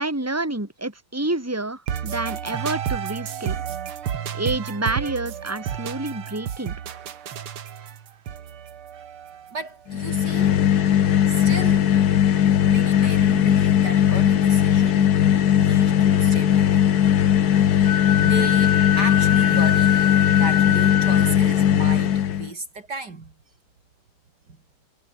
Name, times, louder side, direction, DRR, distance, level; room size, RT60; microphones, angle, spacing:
voice 1, 0.0-3.6 4.3-6.8, right 2 dB, 5° right, 3.5 m, -28 dB
sound 1, 1.9-9.7, right 9 dB, 75° right, 2.5 m, -31 dB
voice 2, 9.5-10.6 11.3-12.0 12.7-16.8 17.5-17.7 18.2-20.0 20.3-23.3, right 3 dB, 50° right, 3.4 m, -35 dB
sound 2, 9.9-22.5, left 10 dB, 55° left, 1.3 m, -18 dB
Wind instrument woodwind instrument, 17.8-21.4, left 10 dB, 80° left, 0.6 m, -24 dB
omnidirectional pair, 2.4 m